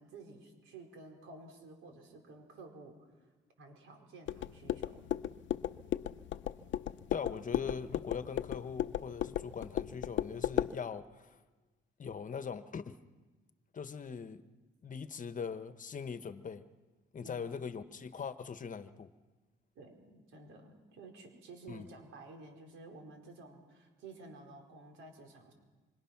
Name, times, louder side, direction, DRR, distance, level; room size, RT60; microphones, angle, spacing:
voice 1, 0.0-3.3 3.6-5.1 17.2-17.5 19.7-25.5, right 3 dB, 85° right, 2 dB, 4.7 m, -52 dB
sound 1, 4.3-10.8, left 11 dB, 70° left, 0.7 m, -36 dB
voice 2, 7.1-11.4 12.0-13.0 13.7-14.4 14.8-16.6 17.1-19.1 21.7-21.9, left 6 dB, 40° left, 11 dB, 1.2 m, -41 dB
26.5 x 25.5 x 6.0 m, 1.3 s
cardioid pair, 90°, 20 cm